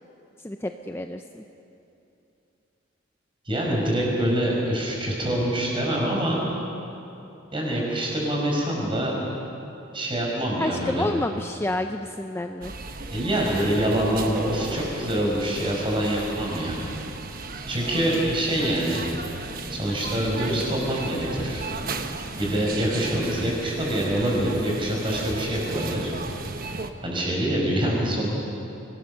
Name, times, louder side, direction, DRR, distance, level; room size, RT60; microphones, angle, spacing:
voice 1, 0.4-1.4 10.6-12.7, left 1 dB, 10° left, 6 dB, 0.5 m, -29 dB
voice 2, 3.5-6.5 7.5-9.2 9.9-11.1 13.1-16.8 17.7-19.0 19.7-21.6 22.4-26.1 27.0-28.3, right 1 dB, 25° right, -2 dB, 5.4 m, -25 dB
sound 1, 12.6-26.9, right 3 dB, 45° right, 1.1 m, -35 dB
26.0 x 18.5 x 6.7 m, 2.8 s
head